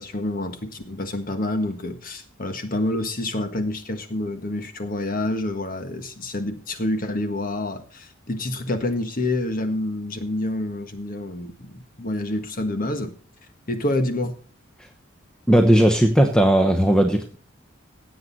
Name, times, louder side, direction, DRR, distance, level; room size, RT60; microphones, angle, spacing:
voice 1, 0.0-13.1 13.7-14.3, left 1 dB, 45° left, 8 dB, 1.5 m, -28 dB
voice 2, 15.5-17.4, equal, 5° left, 5 dB, 0.9 m, -17 dB
16.0 x 7.9 x 4.1 m, 0.41 s
head